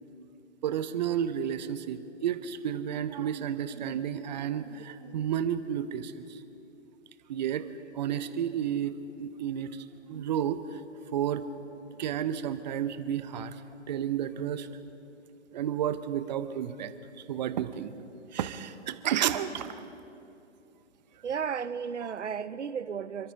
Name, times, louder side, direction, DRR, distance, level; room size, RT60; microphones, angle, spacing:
voice 1, 0.6-6.4 7.3-7.6 7.9-10.8 11.1-11.5 12.0-13.5 13.9-14.7 15.5-16.9 17.3-17.9 18.3-19.8, right 9 dB, 35° right, 12 dB, 0.9 m, -31 dB
voice 2, 21.2-23.3, right 7 dB, 70° right, 15 dB, 0.8 m, -34 dB
28.0 x 13.0 x 3.9 m, 2.7 s
figure-of-eight pair, 125°, 36 cm